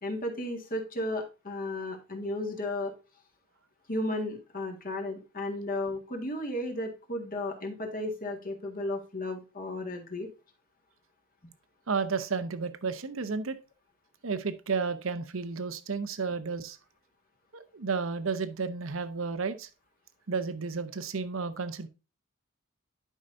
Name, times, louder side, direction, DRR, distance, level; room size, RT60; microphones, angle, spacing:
voice 1, 0.0-2.9 3.9-10.3, left 1 dB, 45° left, 3 dB, 1.8 m, -34 dB
voice 2, 11.9-13.6 14.2-16.8 17.5-19.7 20.3-21.9, right 5 dB, 70° right, 12 dB, 0.8 m, -32 dB
11.0 x 5.5 x 2.6 m, 0.29 s
head